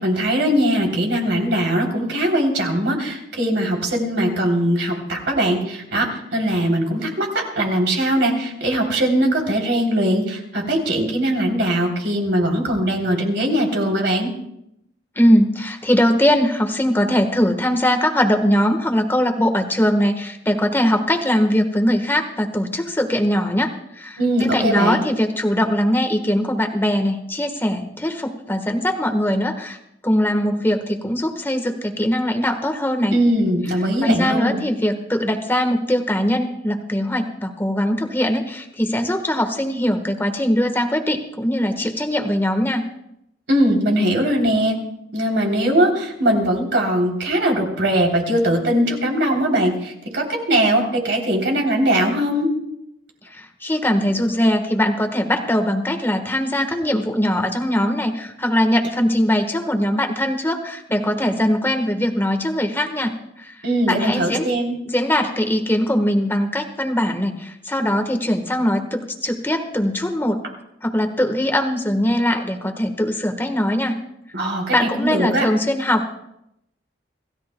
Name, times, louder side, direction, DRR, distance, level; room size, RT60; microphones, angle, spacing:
voice 1, 0.0-14.3 24.2-25.0 33.1-34.6 43.5-44.8 45.1-52.5 63.6-64.8 74.3-75.4, right 1 dB, 65° right, 1 dB, 3.3 m, -20 dB
voice 2, 15.1-29.8 30.0-33.2 34.0-42.8 53.2-63.5 63.9-64.5 64.9-70.4 70.8-74.0 74.4-74.5 74.7-76.1, equal, 10° left, 6 dB, 1.4 m, -21 dB
27.5 x 16.0 x 2.3 m, 0.79 s
head